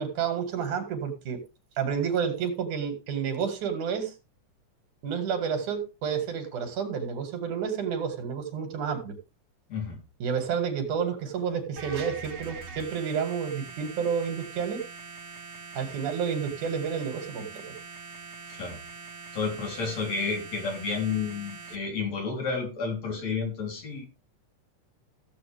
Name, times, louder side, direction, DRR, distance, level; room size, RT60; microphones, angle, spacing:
voice 1, 0.0-1.4 1.8-4.1 5.0-9.2 10.2-14.8 15.8-17.8, right 7 dB, 80° right, 3.7 m, -30 dB
sound 1, 11.8-21.8, right 4 dB, 55° right, 3.3 m, -43 dB
voice 2, 19.3-24.1, left 5 dB, 60° left, 4.8 m, -31 dB
16.0 x 7.9 x 3.5 m
omnidirectional pair, 3.5 m